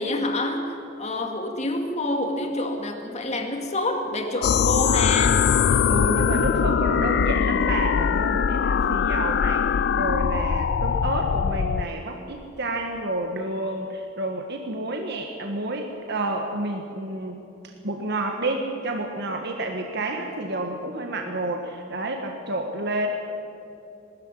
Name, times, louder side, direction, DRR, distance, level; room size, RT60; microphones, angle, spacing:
voice 1, 0.0-5.5, left 2 dB, 35° left, 3 dB, 2.2 m, -27 dB
sound 1, 4.4-11.9, left 7 dB, 55° left, 0.4 m, -22 dB
voice 2, 5.9-17.4 17.8-23.1, right 2 dB, 55° right, 3 dB, 1.5 m, -30 dB
20.0 x 13.5 x 9.9 m, 2.7 s
head